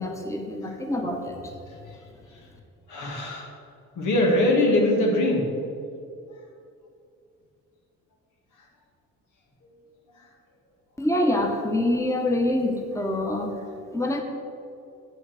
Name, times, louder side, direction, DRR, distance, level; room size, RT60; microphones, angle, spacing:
voice 1, 0.0-1.5 11.0-13.5 13.9-14.2, left 1 dB, 10° left, 2 dB, 1.2 m, -25 dB
voice 2, 2.9-3.5 4.0-5.5, left 1 dB, 80° left, -1 dB, 2.3 m, -22 dB
8.5 x 6.2 x 7.7 m, 2.5 s
cardioid pair, 90°, 30 cm